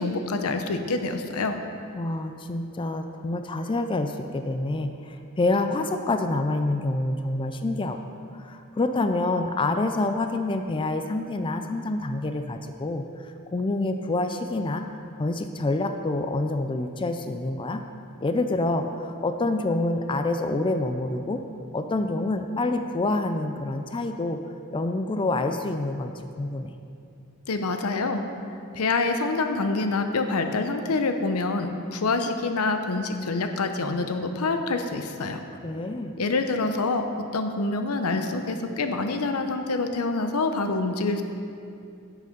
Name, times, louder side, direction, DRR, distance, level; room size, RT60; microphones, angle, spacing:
voice 1, 0.0-1.6 27.5-28.2 28.7-35.4 36.2-37.0 37.3-41.2, left 3 dB, 85° left, 7 dB, 0.7 m, -26 dB
voice 2, 1.9-8.0 8.3-14.8 15.2-17.8 18.2-21.4 21.7-24.4 24.7-26.7 35.6-36.2, left 2 dB, 25° left, 7 dB, 0.4 m, -27 dB
10.5 x 6.5 x 5.2 m, 2.6 s
head